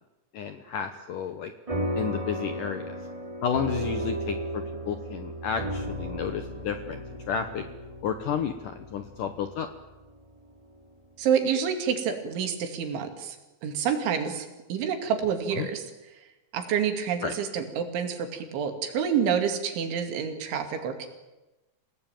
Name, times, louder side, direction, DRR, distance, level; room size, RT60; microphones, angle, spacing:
voice 1, 0.3-1.5 1.9-3.0 3.4-7.6 8.0-9.7 15.6-15.7 17.2-17.4, left 7 dB, 75° left, 8 dB, 2.0 m, -31 dB
sound 1, 1.7-10.4, right 1 dB, 10° right, 1.5 m, -34 dB
voice 2, 11.2-13.4 13.6-15.8 16.5-21.1, right 7 dB, 80° right, 6 dB, 4.9 m, -28 dB
27.5 x 18.0 x 9.1 m, 1.1 s
omnidirectional pair, 5.3 m